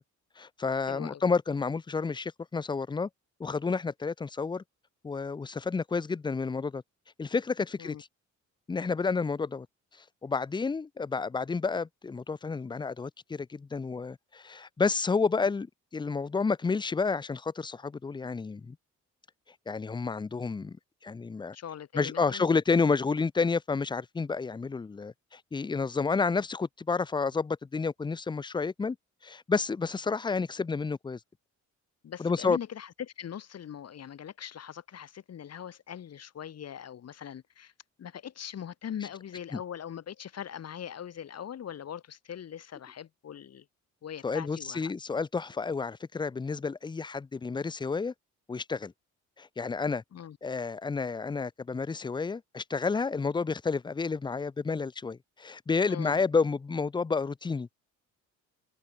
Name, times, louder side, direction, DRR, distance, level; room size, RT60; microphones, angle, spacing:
voice 1, 0.4-3.1 3.4-4.6 5.0-6.8 7.2-8.0 8.7-9.7 10.2-18.8 19.7-20.8 21.0-21.6 21.9-29.0 29.2-31.2 32.2-32.6 39.5-39.6 44.2-48.1 48.5-48.9 49.4-50.0 50.4-57.8, left 4 dB, 15° left, 0.5 m, -30 dB
voice 2, 0.9-1.2 7.8-8.0 21.5-22.6 32.0-37.7 38.0-43.6 44.0-44.9 50.1-50.4 55.9-56.2, left 9 dB, 55° left, 2.3 m, -41 dB
cardioid pair, 90°, 30 cm